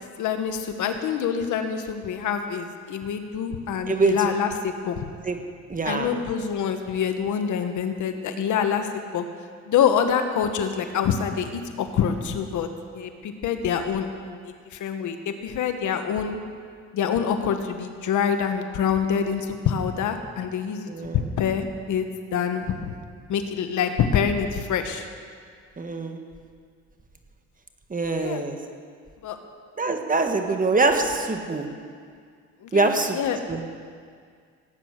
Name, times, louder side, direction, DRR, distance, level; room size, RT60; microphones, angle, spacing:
voice 1, 0.2-5.1 5.8-9.2 9.7-12.7 12.9-16.4 16.9-22.9 23.3-25.1 28.1-28.4 29.2-29.4 32.6-33.4, left 7 dB, 80° left, 7 dB, 1.3 m, -26 dB
voice 2, 3.9-4.3 5.2-5.4 5.7-6.1 20.9-21.2 25.8-26.2 27.9-28.6 29.8-31.7 32.7-33.2 33.5-33.6, right 3 dB, 25° right, 5 dB, 1.6 m, -24 dB
17.0 x 9.3 x 6.5 m, 2.1 s
cardioid pair, 90°, 30 cm